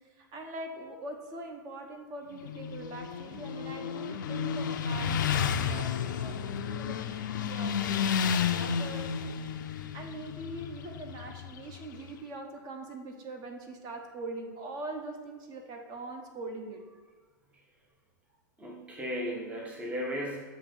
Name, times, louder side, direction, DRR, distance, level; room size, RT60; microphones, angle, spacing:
voice 1, 0.2-6.9 7.3-9.1 9.7-16.8, right 2 dB, 35° right, 4 dB, 1.0 m, -42 dB
Motorcycle, 2.3-12.1, left 7 dB, 70° left, 0.4 m, -32 dB
voice 2, 18.6-20.4, equal, 10° right, -1 dB, 0.7 m, -35 dB
7.2 x 2.7 x 5.3 m, 1.4 s
hypercardioid pair, 105°, 11 cm